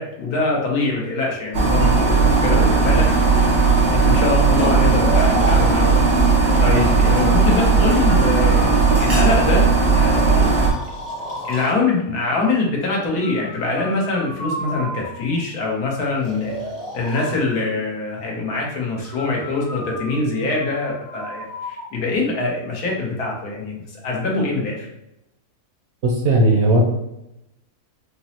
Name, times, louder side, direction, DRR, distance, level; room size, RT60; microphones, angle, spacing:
voice 1, 0.0-3.1 3.9-6.0 6.6-9.6 9.9-10.5 11.5-16.5 16.9-24.9, left 3 dB, 75° left, -2 dB, 1.5 m, -23 dB
sound 1, 1.5-10.7, right 4 dB, 85° right, 1.8 m, -16 dB
Breathing, 4.7-6.5 7.8-9.5 10.0-11.8 13.2-15.4 16.2-17.4 19.0-21.9, right 1 dB, 60° left, 1.7 m, -32 dB
voice 2, 26.0-26.8, right 2 dB, 60° right, 0 dB, 0.8 m, -16 dB
5.1 x 2.0 x 2.9 m, 0.86 s
omnidirectional pair, 1.7 m